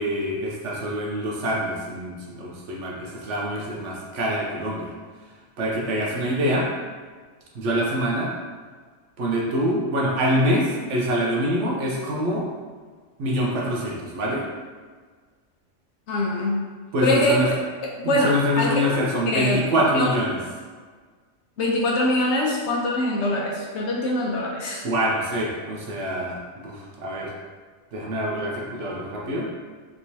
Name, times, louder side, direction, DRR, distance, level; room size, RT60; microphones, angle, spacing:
voice 1, 0.0-4.9 5.6-6.7 7.5-8.3 9.2-12.5 13.2-14.4 16.9-17.5 18.0-20.4 24.8-27.3 27.9-29.5, equal, 65° right, -3 dB, 0.9 m, -25 dB
voice 2, 16.1-16.6 17.0-17.3 18.0-18.7 19.3-19.6 19.9-20.1 21.6-24.8, left 1 dB, 65° left, -3 dB, 0.8 m, -23 dB
3.4 x 3.0 x 2.7 m, 1.5 s
omnidirectional pair, 1.4 m